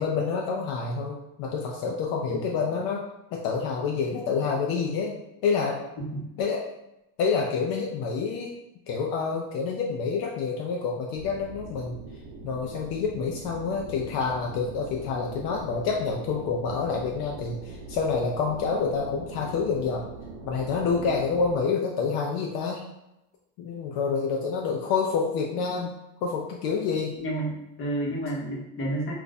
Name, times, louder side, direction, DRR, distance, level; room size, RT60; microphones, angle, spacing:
voice 1, 0.0-3.0 3.3-5.1 5.4-5.8 6.4-6.6 7.2-8.5 8.9-11.9 12.4-20.0 20.4-22.8 23.6-25.9 26.2-27.1, left 5 dB, 65° left, -1 dB, 0.5 m, -28 dB
sound 1, 11.1-21.6, right 3 dB, 85° right, 0.7 m, -42 dB
voice 2, 27.2-29.1, right 1 dB, 30° left, -3 dB, 0.8 m, -31 dB
2.5 x 2.2 x 4.0 m, 0.89 s
cardioid pair, 145°, 40 cm